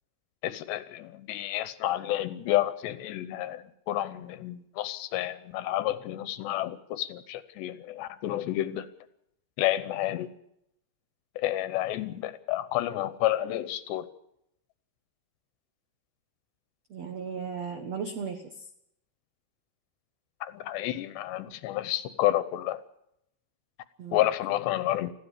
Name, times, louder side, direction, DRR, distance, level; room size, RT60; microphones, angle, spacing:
voice 1, 0.4-8.9 9.6-10.3 11.4-14.1 20.4-22.8 24.1-25.1, left 14 dB, 75° left, 13 dB, 2.9 m, -30 dB
voice 2, 16.9-18.6 24.0-24.2, right 6 dB, 90° right, 6 dB, 1.4 m, -36 dB
21.0 x 15.0 x 8.3 m, 0.78 s
omnidirectional pair, 5.4 m